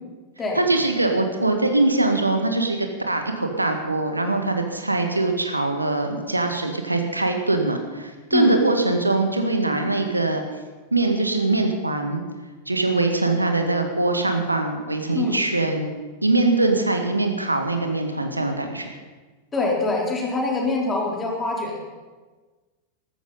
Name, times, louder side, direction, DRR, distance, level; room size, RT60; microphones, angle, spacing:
voice 1, 0.6-10.4 10.9-12.2 12.7-15.9 16.2-19.0, right 2 dB, 85° right, 5 dB, 1.8 m, -22 dB
voice 2, 19.5-21.8, left 2 dB, 15° left, -2 dB, 3.7 m, -24 dB
14.0 x 13.5 x 5.5 m, 1.3 s
figure-of-eight pair, 90°, 0 cm